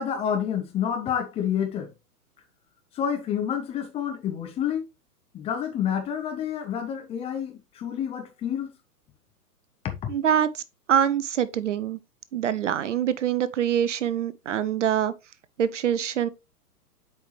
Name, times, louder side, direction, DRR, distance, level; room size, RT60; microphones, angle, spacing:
voice 1, 0.0-1.9 2.9-4.8 5.3-8.7 9.8-10.1, left 8 dB, 15° left, 0.8 m, -29 dB
voice 2, 10.1-10.6 10.9-12.0 12.3-15.1 15.6-16.3, right 9 dB, 50° right, 0.6 m, -24 dB
7.9 x 4.7 x 3.1 m
figure-of-eight pair, 115°, 46 cm